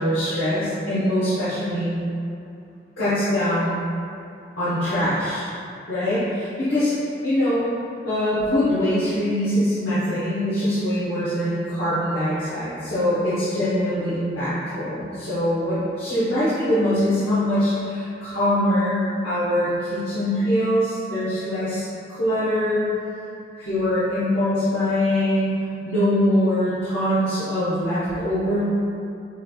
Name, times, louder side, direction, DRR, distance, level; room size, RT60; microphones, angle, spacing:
voice 1, 0.0-2.0 3.0-3.8 4.6-5.5 5.9-6.9 7.2-7.7 8.0-22.9 23.6-28.6, left 1 dB, 85° left, -13 dB, 1.2 m, -23 dB
6.4 x 3.3 x 2.4 m, 2.6 s
head